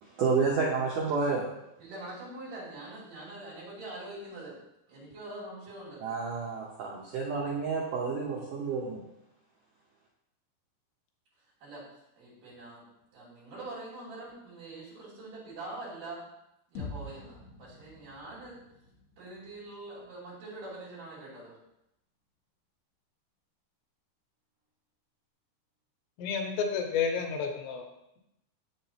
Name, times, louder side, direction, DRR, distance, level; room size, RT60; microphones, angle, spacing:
voice 1, 0.0-1.5 6.0-9.0, right 4 dB, 85° right, -4 dB, 1.8 m, -30 dB
voice 2, 1.8-4.6 4.9-6.0 11.6-11.8 12.2-12.8 13.1-16.2 16.7-18.6 19.2-21.5, right 2 dB, 50° right, -7 dB, 4.1 m, -44 dB
sound 1, 16.8-20.7, left 3 dB, 70° left, 2.8 m, -46 dB
voice 3, 26.2-27.8, left 6 dB, 85° left, 3 dB, 3.0 m, -30 dB
8.0 x 7.3 x 2.9 m, 0.84 s
omnidirectional pair, 5.0 m